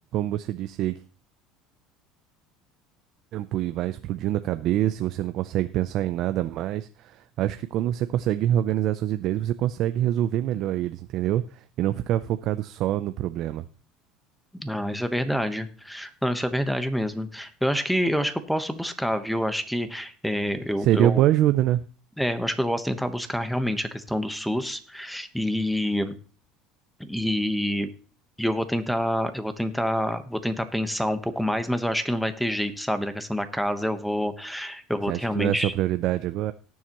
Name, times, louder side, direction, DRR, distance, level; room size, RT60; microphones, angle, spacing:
voice 1, 0.1-0.9 3.3-13.6 20.8-21.8 35.1-36.5, right 12 dB, 55° right, 11 dB, 0.5 m, -25 dB
voice 2, 14.6-21.2 22.2-26.2 27.0-27.9 28.4-35.7, equal, ahead, 10 dB, 1.1 m, -27 dB
18.5 x 7.2 x 3.0 m, 0.39 s
supercardioid pair, 115°, 0 cm